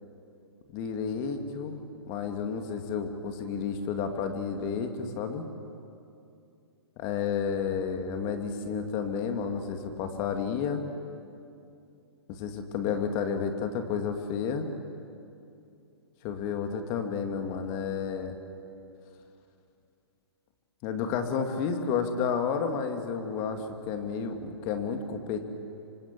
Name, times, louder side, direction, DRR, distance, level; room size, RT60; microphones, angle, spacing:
voice 1, 0.7-1.8 2.1-5.5 7.0-10.8 12.3-14.7 16.2-18.4 20.8-25.5, left 6 dB, 30° left, 6 dB, 2.2 m, -31 dB
26.0 x 24.5 x 8.3 m, 2.6 s
hypercardioid pair, 150°, 14 cm